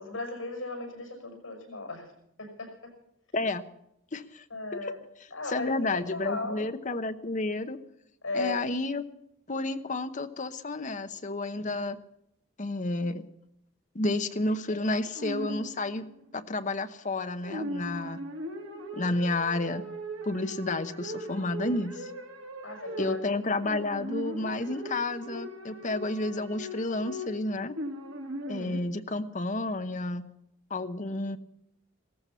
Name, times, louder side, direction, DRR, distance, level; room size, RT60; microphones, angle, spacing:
voice 1, 0.0-2.1 2.4-2.9 4.5-5.0 5.3-6.7 8.2-8.6 22.6-23.2, left 2 dB, 75° left, 4 dB, 6.2 m, -36 dB
voice 2, 4.1-4.4 4.7-4.9 5.5-7.8 8.3-9.0 9.5-12.0 12.6-13.2 13.9-16.1 16.3-18.2 18.9-19.9 20.2-22.1 23.0-27.8 28.5-30.3 30.7-31.4, left 2 dB, 40° left, 9 dB, 0.9 m, -31 dB
sound 1, 15.1-16.0 17.4-28.8, equal, 85° right, 2.5 m, -39 dB
17.0 x 14.5 x 5.7 m, 0.78 s
head